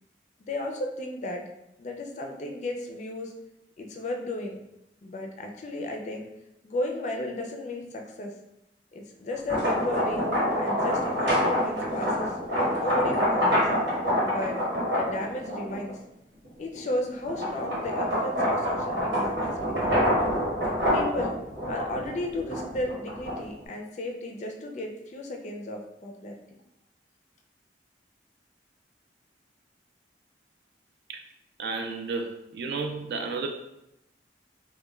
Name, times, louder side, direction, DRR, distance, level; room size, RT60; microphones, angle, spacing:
voice 1, 0.5-1.5 1.8-3.3 3.8-4.6 5.0-6.3 6.6-8.3 8.9-10.3 10.6-12.3 12.7-13.7 14.2-14.6 14.9-16.0 16.6-20.0 20.9-21.4 21.7-26.4, left 1 dB, 40° left, 2 dB, 0.3 m, -34 dB
sound 1, 9.3-15.9 16.4-23.6, equal, 90° right, 1.1 m, -26 dB
voice 2, 31.6-33.5, right 4 dB, 60° right, 4 dB, 0.3 m, -32 dB
2.2 x 2.1 x 3.0 m, 0.84 s
head